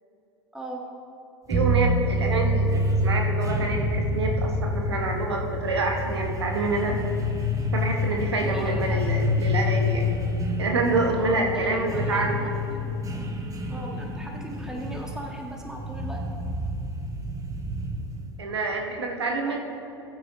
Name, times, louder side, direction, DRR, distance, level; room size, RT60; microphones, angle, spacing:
sound 1, 1.5-18.3, left 1 dB, 25° right, 1.3 m, -27 dB
voice 1, 1.5-6.9 7.7-10.1 10.6-12.5 18.4-19.6, right 3 dB, 90° right, 1 dB, 1.3 m, -27 dB
voice 2, 8.3-9.0 11.1-13.4 13.7-16.2 19.2-19.6, right 1 dB, 5° right, -1 dB, 1.9 m, -39 dB
15.5 x 9.2 x 2.8 m, 2.9 s
hypercardioid pair, 80°, 13 cm